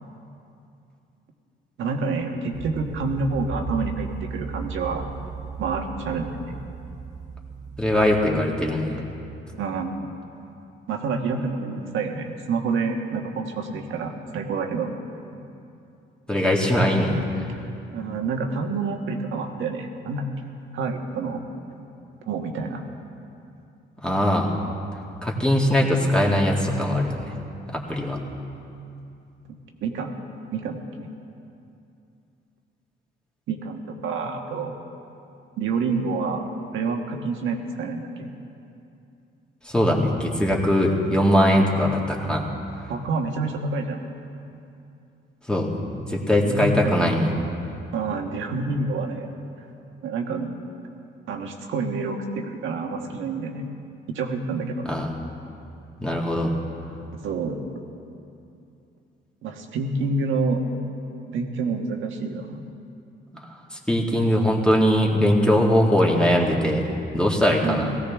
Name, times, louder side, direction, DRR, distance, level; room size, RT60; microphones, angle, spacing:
voice 1, 1.8-5.1 5.6-6.5 9.6-10.1 10.9-15.0 17.9-20.2 20.7-21.4 21.7-21.8 22.2-22.8 29.5-30.1 30.5-30.8 33.5-34.8 35.6-36.5 36.7-38.3 42.9-44.0 46.4-46.9 47.9-49.3 50.0-50.5 51.3-53.7 54.1-54.8 57.2-57.6 59.4-60.6 61.3-62.6 67.6-68.0, right 4 dB, 80° right, 3 dB, 1.5 m, -28 dB
sound 1, 2.5-8.5, right 5 dB, 35° right, 1.8 m, -36 dB
voice 2, 7.8-9.0 16.3-17.5 24.0-24.5 25.2-27.3 27.7-28.2 39.7-42.5 45.5-47.3 54.9-55.1 56.0-56.5 63.9-66.8 67.1-67.9, equal, 5° left, -2 dB, 2.1 m, -21 dB
18.5 x 16.0 x 3.6 m, 2.7 s
cardioid pair, 90°, 20 cm